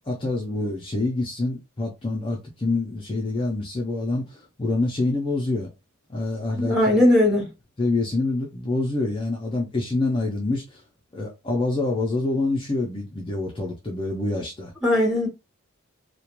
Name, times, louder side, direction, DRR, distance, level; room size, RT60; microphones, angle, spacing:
voice 1, 0.0-5.7 6.1-6.8 7.8-10.8 11.1-14.7, left 2 dB, 25° left, 0.4 m, -26 dB
voice 2, 6.5-7.5 14.8-15.3, left 1 dB, ahead, 0.8 m, -19 dB
2.3 x 2.2 x 2.9 m
head